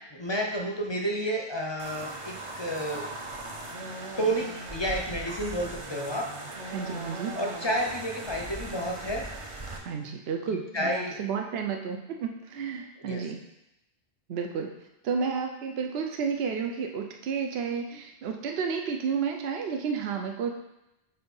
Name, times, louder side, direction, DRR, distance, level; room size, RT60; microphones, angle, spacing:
voice 1, 0.1-3.1 4.2-6.4 6.6-6.7 7.3-9.3 10.7-11.2 13.0-13.2, equal, 30° left, 1 dB, 0.6 m, -30 dB
sound 1, 1.8-9.8, right 2 dB, 35° right, 0.7 m, -39 dB
voice 2, 6.7-7.3 9.8-13.4 14.3-14.7 15.0-20.5, right 6 dB, 70° right, 3 dB, 0.8 m, -31 dB
7.7 x 2.7 x 5.4 m, 0.91 s
omnidirectional pair, 1.1 m